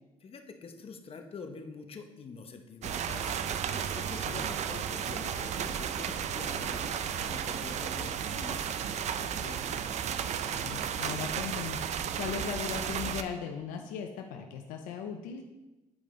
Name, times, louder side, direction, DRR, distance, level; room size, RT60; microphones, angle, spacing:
voice 1, 0.2-3.4 3.7-9.6, left 4 dB, 45° left, 5 dB, 1.0 m, -46 dB
sound 1, 2.8-7.9, right 1 dB, 35° right, 2.2 m, -49 dB
sound 2, 2.8-13.2, right 8 dB, 60° right, 0.5 m, -33 dB
voice 2, 10.6-15.4, left 7 dB, 80° left, 4 dB, 0.6 m, -38 dB
8.9 x 5.0 x 3.8 m, 1.0 s
supercardioid pair, 65°, 13 cm